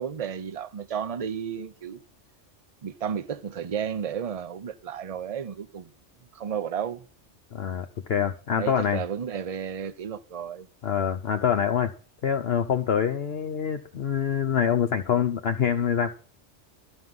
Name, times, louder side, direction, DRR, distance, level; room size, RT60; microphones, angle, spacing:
voice 1, 0.0-2.0 2.8-5.9 6.3-7.0 8.6-10.7, right 8 dB, 35° right, 0.7 m, -32 dB
voice 2, 7.5-9.0 10.8-11.9 12.2-16.1, left 8 dB, 60° left, 0.9 m, -25 dB
13.0 x 5.7 x 9.4 m
omnidirectional pair, 1.2 m